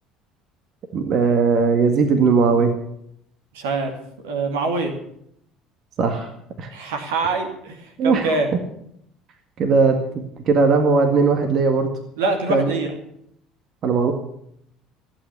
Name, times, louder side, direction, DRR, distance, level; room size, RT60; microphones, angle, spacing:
voice 1, 0.9-2.7 6.0-6.3 6.6-6.7 8.0-8.3 9.6-11.9 12.5-12.7 13.8-14.1, right 4 dB, 50° right, 5 dB, 1.9 m, -18 dB
voice 2, 3.5-3.9 4.2-4.9 6.7-8.5 12.2-12.9, right 3 dB, 75° right, 3 dB, 2.5 m, -24 dB
15.5 x 9.0 x 8.4 m, 0.74 s
hypercardioid pair, 65°, 0 cm